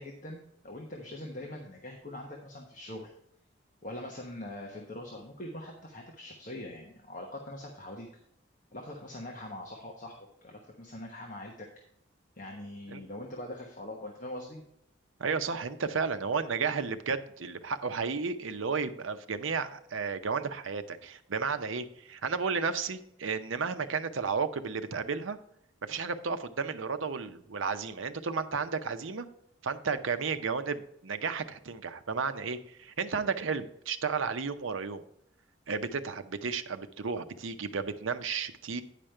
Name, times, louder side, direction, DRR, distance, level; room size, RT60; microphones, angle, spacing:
voice 1, 0.0-3.1 3.8-8.1 8.7-10.2 10.4-11.7 12.4-14.6, left 1 dB, 40° left, 0 dB, 1.1 m, -42 dB
voice 2, 15.2-25.4 25.8-29.3 29.6-35.0 35.7-38.8, right 5 dB, 80° right, 9 dB, 0.7 m, -33 dB
9.8 x 5.1 x 4.4 m, 0.74 s
head